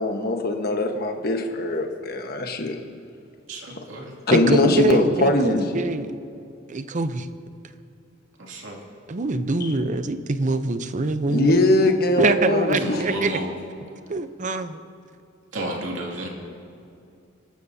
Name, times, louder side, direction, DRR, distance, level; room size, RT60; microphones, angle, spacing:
voice 1, 0.0-2.8 4.3-5.6 9.6-9.7 11.3-12.9, left 2 dB, 55° left, 4 dB, 1.2 m, -21 dB
voice 2, 3.5-4.2 8.4-8.8 12.8-13.5 15.5-16.3, right 1 dB, 80° right, -1 dB, 2.5 m, -32 dB
voice 3, 4.3-6.1 6.7-7.3 9.1-11.5 12.2-13.3 14.1-14.8, right 2 dB, 40° right, 10 dB, 0.6 m, -24 dB
26.5 x 12.5 x 2.7 m, 2.5 s
head